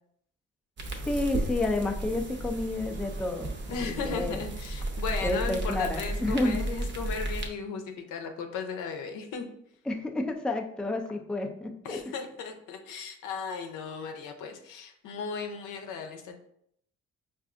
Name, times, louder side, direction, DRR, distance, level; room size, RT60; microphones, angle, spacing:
sound 1, 0.8-7.5, right 2 dB, 40° right, 0.7 m, -34 dB
voice 1, 1.0-4.4 5.2-6.6 9.9-12.0, left 2 dB, 5° left, 3 dB, 0.3 m, -30 dB
voice 2, 3.7-7.8 8.1-9.5 11.8-16.4, left 5 dB, 85° left, 5 dB, 0.6 m, -36 dB
4.8 x 2.5 x 2.5 m, 0.71 s
cardioid pair, 90°, 30 cm